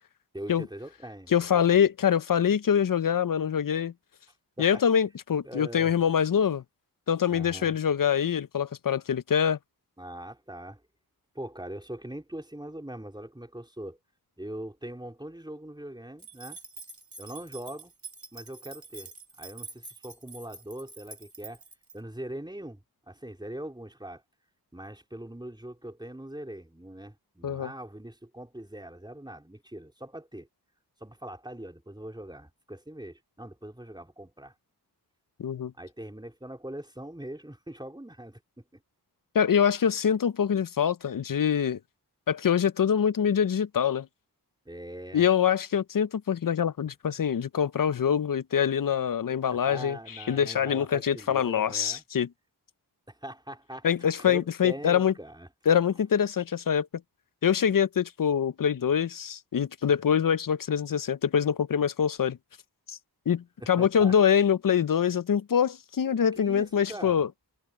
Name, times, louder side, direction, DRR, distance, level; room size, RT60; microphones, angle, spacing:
voice 1, 0.3-1.3 4.6-4.8 5.4-5.9 7.3-7.8 10.0-10.8 11.3-14.0 14.4-16.6 17.2-17.9 18.3-19.1 19.4-21.6 21.9-24.2 24.7-30.5 31.0-34.5 35.8-38.8 44.7-45.3 46.8-46.9 49.5-52.0 53.1-55.5 63.6-64.1 66.3-67.2, right 1 dB, 10° right, 3.9 m, -42 dB
voice 2, 1.3-3.9 4.6-6.6 7.1-9.6 27.4-27.7 35.4-35.7 39.3-41.8 42.3-44.1 45.1-52.3 53.8-55.1 55.7-56.9 57.4-62.4 62.9-63.0 63.3-67.3, left 8 dB, 55° left, 0.7 m, -24 dB
sound 1, 16.2-22.0, right 3 dB, 55° right, 3.7 m, -46 dB
wide cardioid pair, 60°, 40 cm